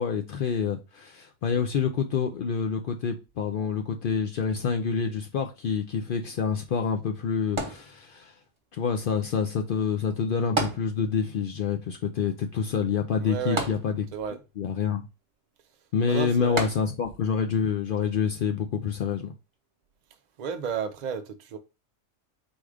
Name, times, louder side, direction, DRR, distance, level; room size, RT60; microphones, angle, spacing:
voice 1, 0.0-8.3 8.7-14.0 14.6-15.1 15.9-19.3, left 6 dB, 75° left, 0.5 m, -27 dB
sound 1, 7.6-8.5 10.6-11.4 11.7-11.8 13.6-14.4 16.6-17.3 18.0-18.1, right 2 dB, 25° right, 0.8 m, -32 dB
voice 2, 13.2-13.7 14.1-14.4 16.0-16.7 20.4-21.6, right 7 dB, 65° right, 0.4 m, -32 dB
4.4 x 2.4 x 4.7 m
omnidirectional pair, 1.4 m